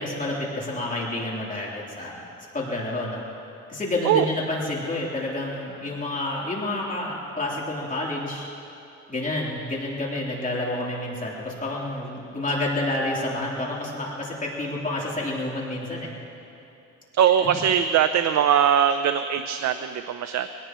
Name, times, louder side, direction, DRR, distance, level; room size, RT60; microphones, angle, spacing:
voice 1, 0.0-3.2 3.7-8.5 9.1-16.1 17.4-17.5, left 2 dB, 25° left, -4 dB, 3.5 m, -29 dB
voice 2, 17.2-20.5, right 9 dB, 65° right, 9 dB, 0.6 m, -21 dB
24.0 x 18.0 x 3.1 m, 2.8 s
cardioid pair, 90°, 30 cm